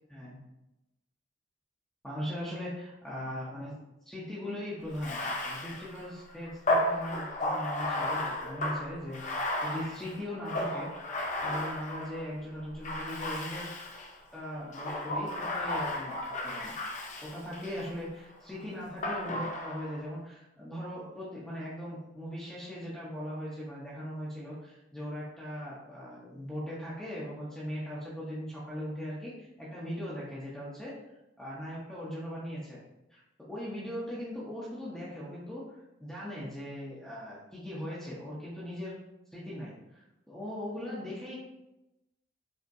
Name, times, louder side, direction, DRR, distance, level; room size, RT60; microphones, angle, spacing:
voice 1, 2.0-2.7 3.0-3.8 4.1-10.9 11.4-13.7 14.3-16.2 16.4-16.7 17.2-30.9 31.4-32.8 33.1-39.0 39.3-41.4, equal, 5° left, -8 dB, 0.7 m, -39 dB
Bathtub (filling or washing), 4.9-12.3 12.8-14.1 14.7-17.9 19.0-20.0, left 1 dB, 40° left, 0.5 m, -34 dB
5.2 x 2.8 x 2.6 m, 0.93 s
head